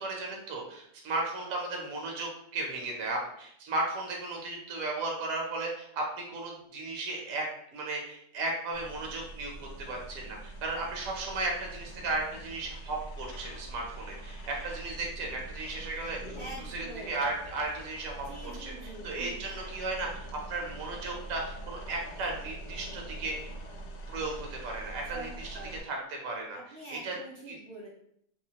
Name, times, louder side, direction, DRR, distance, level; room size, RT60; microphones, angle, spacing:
voice 1, 0.0-7.5 7.7-23.5 24.1-25.6 25.8-26.6 26.9-27.2 27.5-27.6, right 2 dB, 65° right, 0 dB, 1.0 m, -35 dB
sound 1, 8.7-25.8, right 2 dB, 75° left, 1.1 m, -44 dB
voice 2, 16.3-17.3 18.3-19.5 25.1-25.8 26.5-27.9, right 2 dB, 85° right, -6 dB, 0.5 m, -45 dB
2.9 x 2.4 x 2.8 m, 0.69 s
omnidirectional pair, 1.7 m